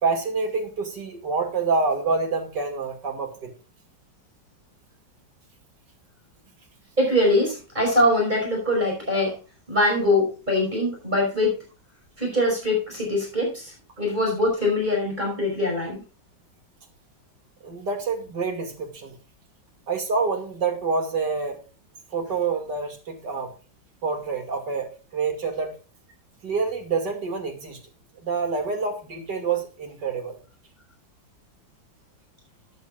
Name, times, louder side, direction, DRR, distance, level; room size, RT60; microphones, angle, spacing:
voice 1, 0.0-3.5 17.6-19.2 19.9-21.6 22.1-23.5 24.0-25.8 26.4-27.8 28.2-30.4, right 4 dB, 60° right, 4 dB, 2.9 m, -27 dB
voice 2, 7.0-9.4 9.7-11.6 12.2-16.0, left 1 dB, 20° right, -2 dB, 5.5 m, -23 dB
13.5 x 10.0 x 2.5 m, 0.33 s
omnidirectional pair, 2.1 m